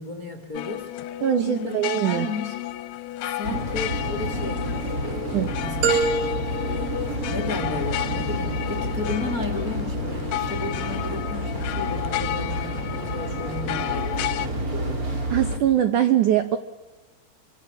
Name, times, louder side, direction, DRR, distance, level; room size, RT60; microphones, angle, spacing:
voice 1, 0.0-1.1 1.5-1.7 2.0-2.5 3.3-4.7 5.0-6.1 7.3-15.0, left 3 dB, 25° left, 2.0 m, -33 dB
sound 1, 0.5-14.5, left 14 dB, 75° left, 2.8 m, -32 dB
voice 2, 1.2-2.3 5.3-5.6 15.3-16.6, right 11 dB, 85° right, 1.7 m, -22 dB
sound 2, 3.4-15.6, equal, 20° right, 3.1 m, -29 dB
sound 3, 5.8-7.9, right 5 dB, 65° right, 4.7 m, -27 dB
27.5 x 26.0 x 7.3 m
omnidirectional pair, 5.1 m